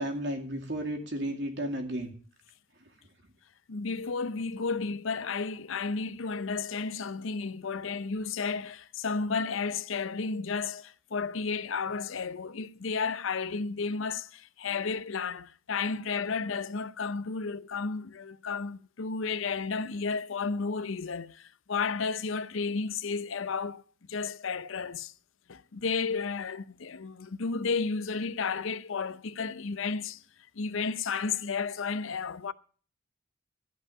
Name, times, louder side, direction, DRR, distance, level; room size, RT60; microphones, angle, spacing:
voice 1, 0.0-2.1, right 1 dB, 55° right, 2.4 m, -33 dB
voice 2, 3.7-23.8 24.1-25.1 25.5-30.2 30.6-32.5, left 5 dB, 70° left, 0.6 m, -32 dB
14.0 x 5.4 x 9.3 m
head